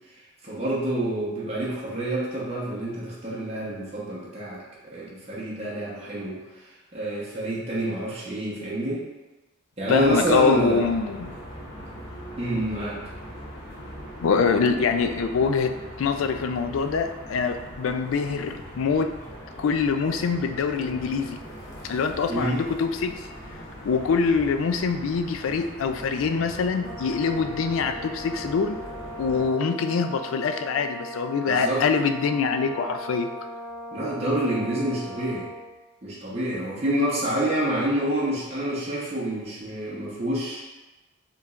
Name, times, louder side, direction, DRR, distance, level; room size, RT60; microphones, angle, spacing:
voice 1, 0.4-4.6 4.9-6.4 6.9-9.0 9.8-10.9 12.4-13.0 22.3-22.6 31.4-31.8 33.9-35.5 36.0-40.6, right 1 dB, 30° right, -8 dB, 0.9 m, -27 dB
voice 2, 9.9-11.3 14.2-19.1 19.6-21.4 21.8-23.2 23.8-28.8 29.2-33.3, left 5 dB, 75° left, 8 dB, 0.3 m, -24 dB
sound 1, 9.9-29.5, equal, 55° left, 1.0 m, -41 dB
Brass instrument, 26.8-35.7, equal, 5° left, 1.2 m, -39 dB
5.6 x 3.1 x 2.4 m, 1.1 s
head